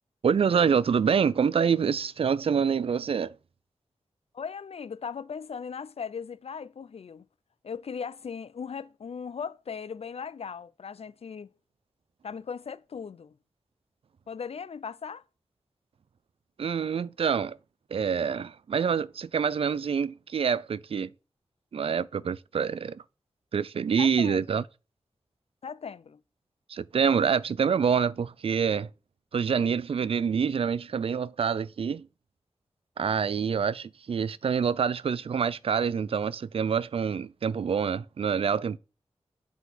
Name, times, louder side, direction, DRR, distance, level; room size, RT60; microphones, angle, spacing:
voice 1, 0.2-3.3 16.6-17.6 17.9-21.1 21.7-23.0 23.5-24.6 26.7-28.9 29.3-32.1 33.0-38.8, right 6 dB, 55° right, 0.4 m, -26 dB
voice 2, 4.3-7.3 7.6-11.5 12.2-13.3 14.3-15.2 24.0-24.6 25.6-26.2, left 6 dB, 60° left, 0.5 m, -38 dB
8.2 x 3.9 x 6.0 m
wide cardioid pair, 85°, 11 cm